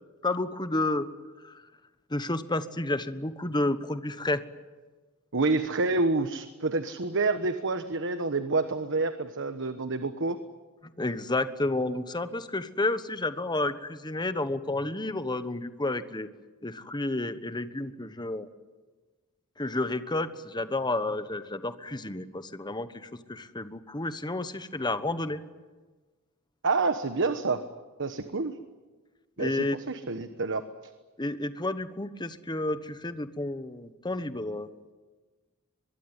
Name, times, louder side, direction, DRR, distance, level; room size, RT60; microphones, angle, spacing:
voice 1, 0.2-1.1 1.4-1.6 2.1-4.4 10.8-16.3 16.6-18.5 19.6-25.4 29.4-29.8 31.2-34.7, left 2 dB, 20° left, 11 dB, 1.2 m, -31 dB
voice 2, 5.3-10.4 26.6-27.6 28.0-28.6 29.4-30.6, right 3 dB, 60° right, 9 dB, 1.2 m, -28 dB
23.5 x 22.5 x 9.8 m, 1.3 s
head